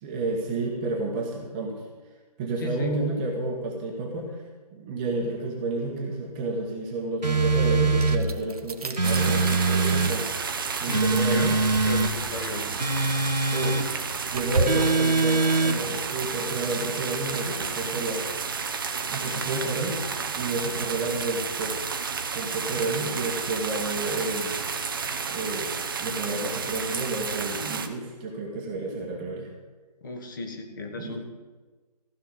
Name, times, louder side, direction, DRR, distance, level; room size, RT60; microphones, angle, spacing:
voice 1, 0.0-1.8 2.4-4.4 4.7-11.6 13.5-18.4 19.1-20.0 20.4-21.7 22.3-24.6 25.2-29.5 30.9-31.2, right 2 dB, 15° right, -1 dB, 1.3 m, -31 dB
voice 2, 2.6-2.9 10.8-11.5 11.8-12.8 30.0-31.2, left 3 dB, 30° left, 3 dB, 1.5 m, -35 dB
sound 1, 7.2-8.2 9.0-10.1 10.9-12.1 12.8-13.9 14.7-15.8, right 3 dB, 90° right, 1.8 m, -23 dB
sound 2, 8.0-9.2 11.2-12.4 12.9-13.1 13.5-14.9, right 3 dB, 60° right, 1.1 m, -32 dB
sound 3, 9.0-27.9, right 5 dB, 30° right, 0.8 m, -31 dB
15.0 x 5.8 x 9.4 m, 1.3 s
figure-of-eight pair, 155°, 21 cm